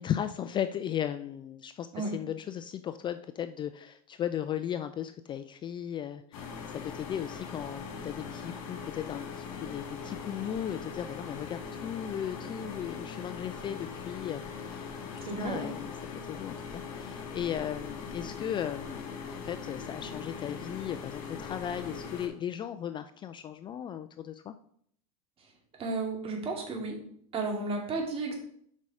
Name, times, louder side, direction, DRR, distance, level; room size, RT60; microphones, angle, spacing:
voice 1, 0.0-15.9 16.2-24.5, left 10 dB, 25° left, 11 dB, 0.4 m, -36 dB
sound 1, 6.3-22.3, left 5 dB, 65° left, 2.5 m, -41 dB
voice 2, 15.2-15.7 25.8-27.0 27.3-28.3, right 3 dB, 30° right, 1 dB, 2.5 m, -33 dB
7.3 x 5.4 x 4.9 m, 0.65 s
supercardioid pair, 120°, 18 cm